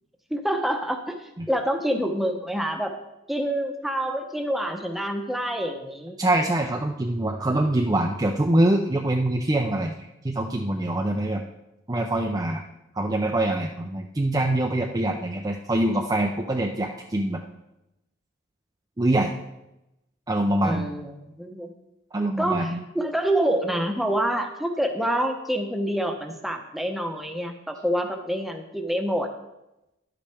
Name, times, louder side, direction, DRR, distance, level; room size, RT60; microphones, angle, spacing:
voice 1, 0.3-2.9 3.3-6.2 20.6-21.7 22.4-29.3, right 1 dB, ahead, 3 dB, 0.8 m, -27 dB
voice 2, 6.2-9.9 10.2-11.4 11.9-12.6 13.0-17.4 19.0-19.3 20.3-20.9 22.1-22.8, right 1 dB, 20° right, 2 dB, 0.5 m, -24 dB
11.5 x 8.4 x 3.4 m, 0.92 s
head